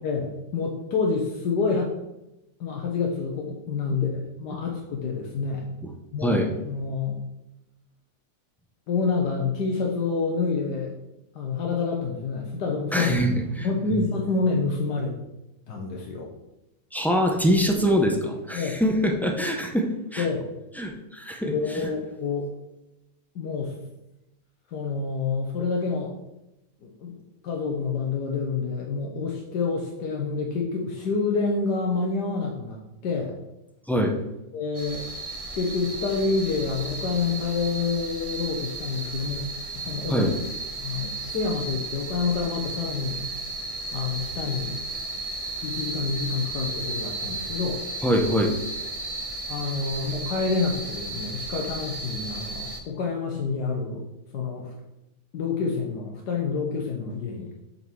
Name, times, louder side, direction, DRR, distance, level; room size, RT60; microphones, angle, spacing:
voice 1, 0.0-1.9 2.6-5.7 6.1-7.2 8.9-10.9 11.3-13.1 13.6-15.2 15.7-16.3 18.5-18.8 20.2-20.4 21.4-22.5 23.3-23.7 24.7-26.2 26.8-27.2 27.4-33.4 34.5-35.0 35.5-39.5 39.7-40.3 40.8-43.2 43.9-44.8 45.6-47.8 49.5-54.0 54.3-54.7 55.3-57.5, left 4 dB, 85° left, 0 dB, 1.6 m, -28 dB
voice 2, 12.9-14.0 16.9-20.3 20.8-21.5 33.9-34.2 40.1-40.3 48.0-48.5, equal, ahead, 1 dB, 0.4 m, -24 dB
sound 1, 34.7-52.8, right 2 dB, 30° right, 0.7 m, -34 dB
5.8 x 5.4 x 6.2 m, 0.91 s
omnidirectional pair, 1.8 m